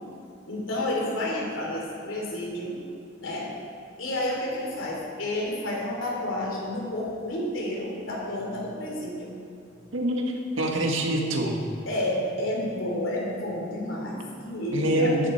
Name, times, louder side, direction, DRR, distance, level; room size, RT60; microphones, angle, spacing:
voice 1, 0.5-2.8 3.2-3.5 4.0-9.3 11.8-15.3, left 1 dB, 90° left, -2 dB, 3.4 m, -30 dB
voice 2, 9.9-11.6 14.7-15.3, right 1 dB, 80° right, 1 dB, 1.8 m, -25 dB
14.0 x 10.5 x 4.5 m, 2.5 s
head